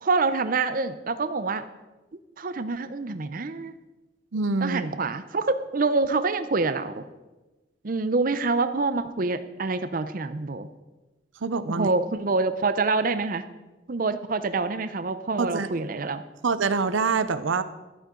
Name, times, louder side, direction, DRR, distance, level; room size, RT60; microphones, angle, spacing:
voice 1, 0.0-1.6 2.4-3.7 4.6-7.0 7.8-10.7 11.7-13.4 13.9-16.2, right 3 dB, 45° right, 11 dB, 0.6 m, -26 dB
voice 2, 4.3-4.8 11.4-11.9 15.4-15.7 16.4-17.6, right 4 dB, 85° right, 12 dB, 0.6 m, -25 dB
14.0 x 12.0 x 3.8 m, 1.1 s
head